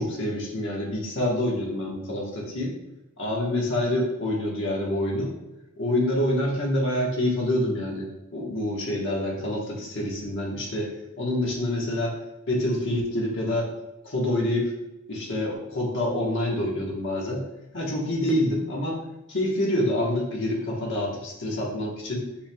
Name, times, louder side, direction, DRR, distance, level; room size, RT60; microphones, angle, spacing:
voice 1, 0.0-2.7 3.2-5.3 5.8-10.9 11.2-12.2 12.5-13.7 14.0-14.7 15.1-17.4 17.7-19.0 19.3-22.3, left 1 dB, 60° left, -2 dB, 1.2 m, -27 dB
7.1 x 3.3 x 2.3 m, 0.95 s
head